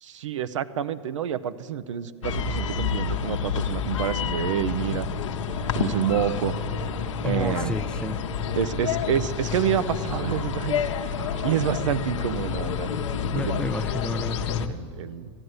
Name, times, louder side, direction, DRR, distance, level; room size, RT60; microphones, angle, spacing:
voice 1, 0.0-5.1 5.7-6.5 7.2-7.8 8.6-12.9 13.3-13.6 14.7-15.3, right 9 dB, 85° right, 14 dB, 0.6 m, -28 dB
sound 1, 2.2-14.7, left 6 dB, 80° left, 0.9 m, -29 dB
sound 2, 5.5-11.5, right 3 dB, 30° right, 1.2 m, -43 dB
voice 2, 7.2-8.2 13.3-14.7, left 3 dB, 5° left, 12 dB, 0.3 m, -31 dB
sound 3, 7.8-8.9 10.1-10.3 10.8-10.9 12.2-12.3 12.5-12.9 13.2-13.3 13.6-14.6, left 12 dB, 40° left, 1.1 m, -44 dB
13.0 x 9.6 x 7.8 m, 2.4 s
hypercardioid pair, 110°, 16 cm